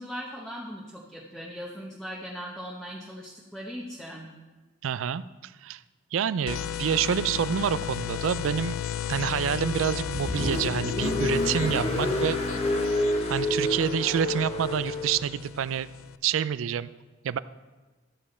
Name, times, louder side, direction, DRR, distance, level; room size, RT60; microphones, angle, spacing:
voice 1, 0.0-4.3, equal, 5° left, -2 dB, 0.9 m, -39 dB
voice 2, 4.8-5.8 6.1-8.8 9.1-12.4 13.3-15.9 16.2-16.9 17.2-17.4, right 8 dB, 75° right, 16 dB, 0.4 m, -27 dB
sound 1, 6.5-16.2, left 9 dB, 80° left, 0.3 m, -34 dB
Car, 9.8-15.2, left 1 dB, 30° left, 0.9 m, -29 dB
13.0 x 7.0 x 4.3 m, 1.2 s
head